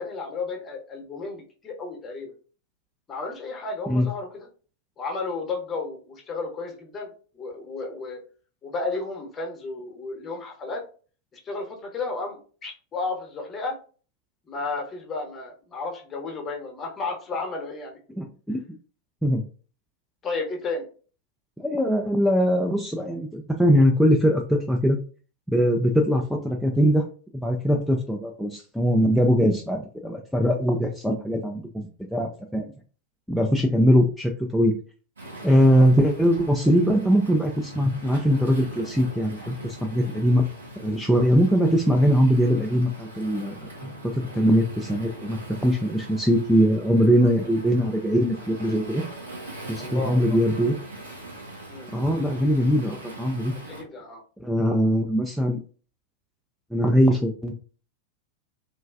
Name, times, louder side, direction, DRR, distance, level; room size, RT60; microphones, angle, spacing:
voice 1, 0.0-2.3 3.1-4.5 5.0-8.2 8.6-10.8 11.3-13.8 14.5-18.0 20.2-20.9 49.7-50.4 51.7-51.9 53.5-54.2, left 3 dB, 20° left, 2 dB, 0.8 m, -33 dB
voice 2, 18.2-18.6 19.2-19.4 21.6-25.0 25.5-27.0 27.4-32.7 33.3-34.7 35.4-40.4 40.8-49.0 49.7-50.8 51.9-53.5 54.4-55.6 56.7-57.5, equal, ahead, -1 dB, 0.3 m, -21 dB
Waves surf, 35.2-53.8, right 1 dB, 75° right, 1.0 m, -41 dB
3.1 x 2.3 x 2.3 m, 0.39 s
figure-of-eight pair, 90°, 0 cm